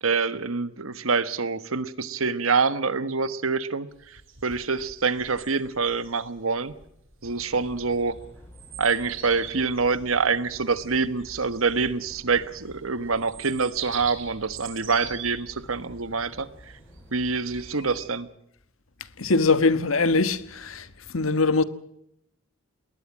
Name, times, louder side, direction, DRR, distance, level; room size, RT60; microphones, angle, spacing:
voice 1, 0.0-6.7 7.2-8.2 8.8-16.7 17.1-18.3, right 4 dB, 90° right, 1.4 m, -26 dB
sound 1, 3.9-17.6, right 8 dB, 70° right, 7.0 m, -43 dB
sound 2, 7.2-18.1, equal, 10° left, 6.3 m, -49 dB
voice 2, 19.2-20.9 21.1-21.6, left 3 dB, 85° left, 1.4 m, -22 dB
20.5 x 19.5 x 7.4 m
head